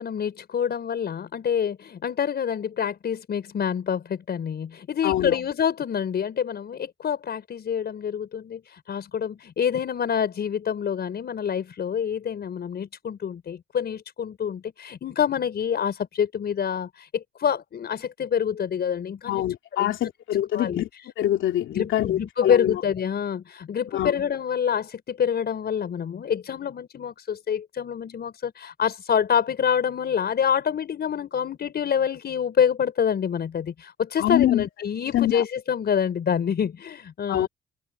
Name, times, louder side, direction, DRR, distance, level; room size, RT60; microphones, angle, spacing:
voice 1, 0.0-19.4 19.7-20.0 20.5-20.8 21.7-37.5, left 8 dB, 55° left, 5.7 m, -27 dB
voice 2, 5.0-5.4 19.3-20.9 21.2-22.8 23.9-24.1 34.2-34.7 35.1-35.4 37.3-37.5, left 12 dB, 80° left, 2.9 m, -24 dB
open air
cardioid pair, 90°, 20 cm